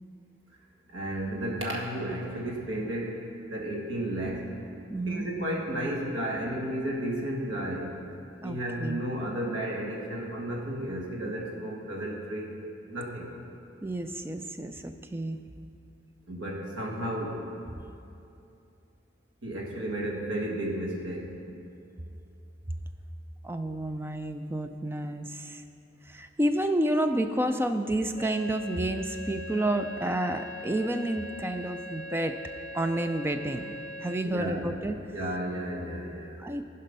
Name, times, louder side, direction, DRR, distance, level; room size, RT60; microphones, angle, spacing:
voice 1, 0.9-3.2 3.5-4.5 5.1-8.0 8.4-12.6 12.9-13.3 16.3-17.5 19.4-21.3 34.2-34.7 35.1-36.4, right 1 dB, 80° right, -3 dB, 1.8 m, -33 dB
voice 2, 4.9-5.3 8.4-9.0 13.8-15.4 23.4-25.6 26.0-32.4 32.7-33.7 34.0-35.0 36.4-36.6, right 1 dB, 10° right, 7 dB, 0.3 m, -30 dB
sound 1, 28.2-34.2, left 1 dB, 35° left, 0.7 m, -41 dB
15.0 x 5.3 x 5.4 m, 2.7 s
head